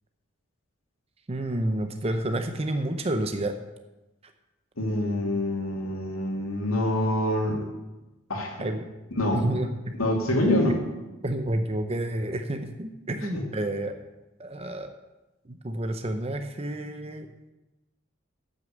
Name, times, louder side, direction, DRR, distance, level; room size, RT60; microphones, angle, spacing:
voice 1, 1.3-3.5 8.6-8.9 9.3-9.9 10.3-10.7 11.2-13.9 14.4-14.9 15.5-17.3, right 1 dB, 30° right, 6 dB, 0.7 m, -30 dB
voice 2, 4.8-7.6 8.3-8.5 9.2-9.5 10.0-10.8 13.3-13.5, left 1 dB, 90° left, 1 dB, 2.4 m, -25 dB
10.0 x 6.5 x 7.2 m, 1.0 s
head